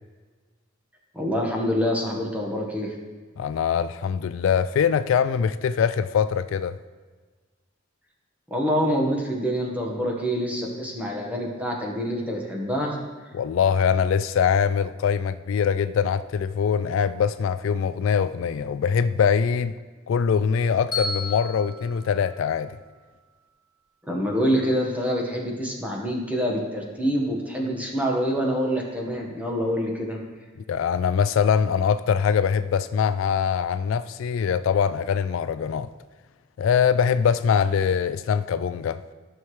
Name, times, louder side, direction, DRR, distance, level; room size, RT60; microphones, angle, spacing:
voice 1, 1.1-2.9 8.5-13.0 24.1-30.2, equal, 10° right, 1.3 m, -26 dB
voice 2, 3.4-6.8 13.3-19.7 20.1-22.8 30.7-35.9 36.6-39.0, left 7 dB, 70° left, 0.3 m, -23 dB
Bell, 20.9-23.1, left 3 dB, 20° left, 3.0 m, -34 dB
14.0 x 5.8 x 3.2 m
head